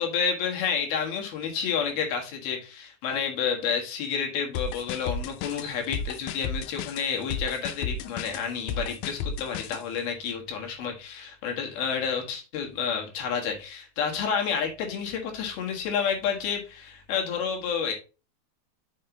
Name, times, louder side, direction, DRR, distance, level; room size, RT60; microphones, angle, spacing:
voice 1, 0.0-17.9, left 7 dB, 60° left, 1 dB, 3.1 m, -30 dB
sound 1, 4.6-9.8, left 5 dB, 85° left, 3.1 m, -33 dB
6.6 x 5.5 x 3.8 m, 0.32 s
omnidirectional pair, 5.4 m